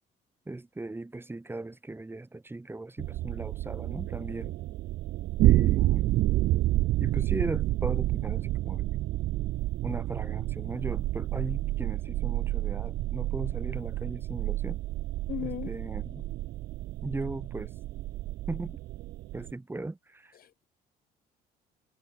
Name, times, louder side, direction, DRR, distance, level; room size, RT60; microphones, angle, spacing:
voice 1, 0.5-4.6 5.4-6.2 7.0-8.9 9.8-14.8 15.4-16.2 17.0-17.7 18.5-18.8 19.3-20.3, right 2 dB, 15° right, 7.4 m, -37 dB
sound 1, 3.0-19.5, right 16 dB, 65° right, 0.5 m, -29 dB
voice 2, 15.3-15.7 20.4-20.6, left 11 dB, 60° left, 3.7 m, -36 dB
cardioid pair, 110°, 17 cm